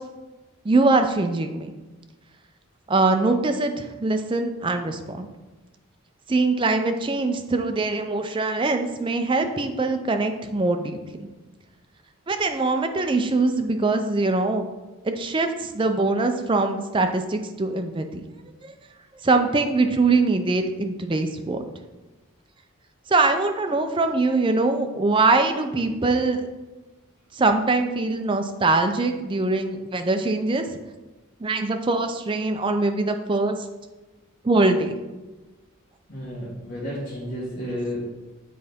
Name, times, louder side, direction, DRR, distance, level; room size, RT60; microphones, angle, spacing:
voice 1, 0.6-1.7 2.9-5.3 6.3-11.0 12.3-14.6 15.0-18.2 18.6-18.7 19.2-21.6 23.1-26.5 27.4-30.6 31.4-33.6 34.4-35.0, right 3 dB, 25° right, 6 dB, 0.4 m, -22 dB
voice 2, 36.1-38.0, equal, 55° left, -10 dB, 1.8 m, -32 dB
7.7 x 3.9 x 3.5 m, 1.1 s
head